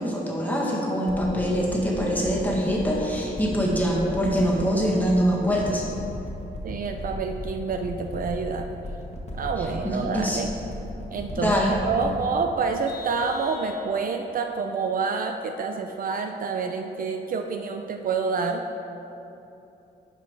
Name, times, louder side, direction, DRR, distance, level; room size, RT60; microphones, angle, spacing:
voice 1, 0.0-5.9 9.8-10.4 11.4-11.8, equal, 10° left, -4 dB, 1.5 m, -24 dB
sound 1, 1.1-13.8 14.4-14.5, left 1 dB, 35° left, 1.4 m, -36 dB
voice 2, 6.6-8.7 9.4-10.5 11.1-18.6, right 5 dB, 50° right, 5 dB, 0.4 m, -28 dB
Vehicle horn car horn honking, 12.9-14.3, left 2 dB, 65° left, 1.2 m, -43 dB
10.5 x 5.1 x 3.3 m, 3.0 s
cardioid pair, 95°, 18 cm